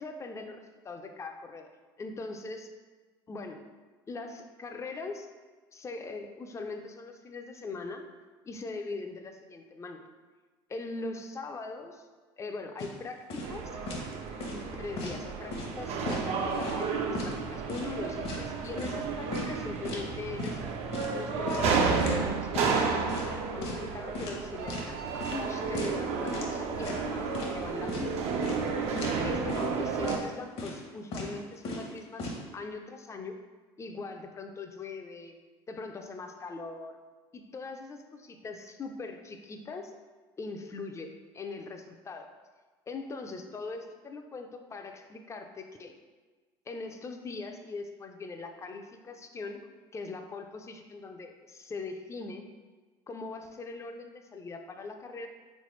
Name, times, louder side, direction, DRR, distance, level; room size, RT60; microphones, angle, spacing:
voice 1, 0.0-1.7 2.0-2.7 3.3-3.6 4.1-5.3 5.7-8.0 8.4-10.0 10.7-12.1 12.4-13.8 14.5-20.6 21.1-28.4 28.7-33.4 33.8-35.4 35.7-37.0 37.3-39.9 40.4-42.3 42.9-45.9 46.7-49.6 49.9-52.4 53.1-55.3, left 3 dB, 25° left, 5 dB, 0.4 m, -41 dB
sound 1, 12.8-13.0 13.3-13.5 13.9-14.1 14.4-15.2 15.5-15.7 16.1-16.8 17.1-17.4 17.7-19.0 19.3-19.5 19.8-20.1 20.4-20.6 20.9-22.2 22.5-22.7 23.1-23.3 23.6-23.9 24.1-24.9 25.2-25.4 25.7-26.0 26.3-26.5 26.8-27.5 27.9-28.1 28.4-28.7 29.0-29.2 29.5-29.7 30.0-30.2 30.6-30.9 31.1-31.3 31.6-32.4, left 2 dB, 50° left, 0.8 m, -37 dB
sound 2, 13.4-30.2, right 5 dB, 60° right, 0.5 m, -32 dB
3.5 x 3.2 x 3.1 m, 1.3 s
supercardioid pair, 80°, 12 cm